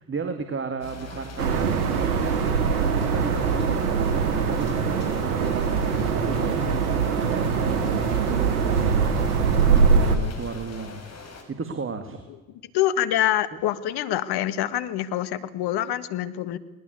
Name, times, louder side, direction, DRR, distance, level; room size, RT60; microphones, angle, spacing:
voice 1, 0.0-2.8 3.0-5.8 6.1-11.1 11.5-12.2 13.5-13.6, right 5 dB, 30° right, 8 dB, 2.5 m, -35 dB
sound 1, 0.8-11.4, left 3 dB, 35° left, 7.1 m, -43 dB
sound 2, 1.4-10.2, right 5 dB, 90° right, 2.1 m, -22 dB
voice 2, 12.7-16.6, left 12 dB, 60° left, 14 dB, 1.7 m, -26 dB
21.0 x 19.0 x 8.4 m, 1.2 s
hypercardioid pair, 70°, 44 cm